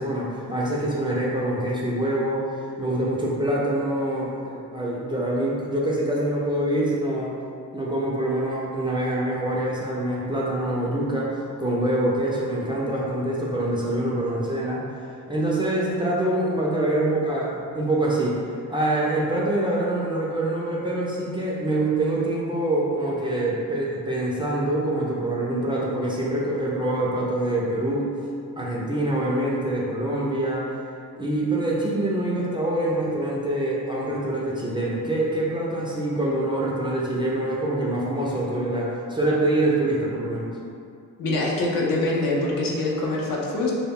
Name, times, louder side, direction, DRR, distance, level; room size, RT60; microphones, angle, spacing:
voice 1, 0.0-2.4 2.8-7.3 7.7-11.3 11.6-14.8 15.3-18.4 18.7-28.1 28.6-30.6 31.2-40.5, right 1 dB, 15° right, -6 dB, 0.4 m, -25 dB
voice 2, 41.2-43.7, left 2 dB, 60° left, -3 dB, 0.6 m, -24 dB
2.2 x 2.1 x 3.5 m, 2.4 s
cardioid pair, 60°, 38 cm